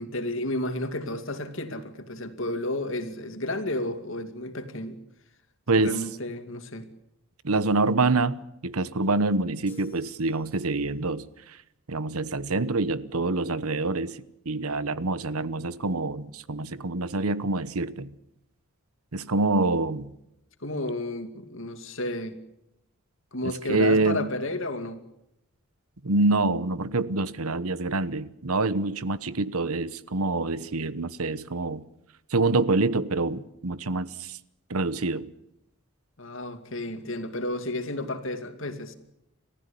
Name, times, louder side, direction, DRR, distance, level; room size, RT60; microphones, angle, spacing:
voice 1, 0.0-5.0 5.8-6.9 20.6-22.4 23.3-25.0 36.2-38.9, left 1 dB, 60° left, 8 dB, 2.4 m, -32 dB
voice 2, 5.7-6.1 7.4-11.6 11.9-14.2 14.4-18.1 19.1-20.1 23.4-24.3 26.0-31.8 32.3-34.4 34.7-35.3, right 3 dB, 80° right, 16 dB, 1.0 m, -26 dB
sound 1, 9.7-11.0, left 2 dB, 10° left, 3.8 m, -53 dB
29.5 x 14.5 x 8.5 m, 0.84 s
head